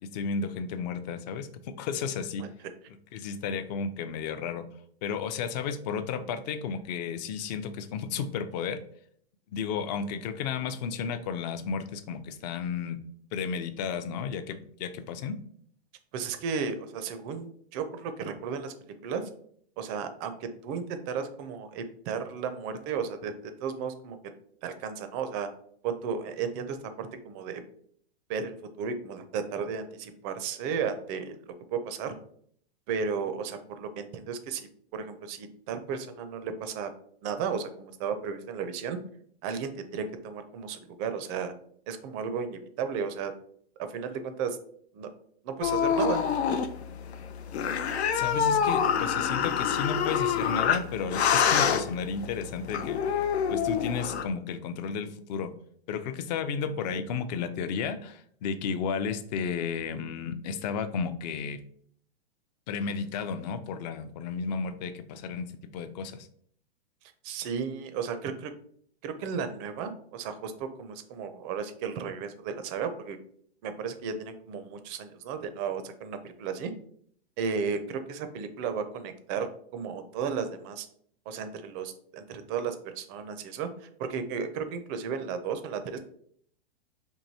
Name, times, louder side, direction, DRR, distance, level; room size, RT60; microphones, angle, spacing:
voice 1, 0.0-2.5 3.1-4.7 5.0-8.8 9.5-13.0 13.3-15.4 48.1-55.5 55.9-61.6 62.7-66.3, left 6 dB, 45° left, 11 dB, 0.5 m, -33 dB
voice 2, 16.1-18.7 19.0-19.2 19.8-24.2 24.6-25.5 25.8-27.6 28.3-31.4 31.7-32.1 32.9-36.9 37.2-39.0 39.4-41.5 41.9-43.3 43.8-44.6 44.9-45.1 45.4-46.2 67.2-68.5 69.0-73.2 73.6-76.7 77.4-80.9 81.3-86.0, right 6 dB, 30° right, 9 dB, 0.4 m, -34 dB
sound 1, 45.6-54.2, left 7 dB, 90° left, 0.5 m, -27 dB
4.6 x 2.6 x 2.7 m, 0.62 s
hypercardioid pair, 125°, 32 cm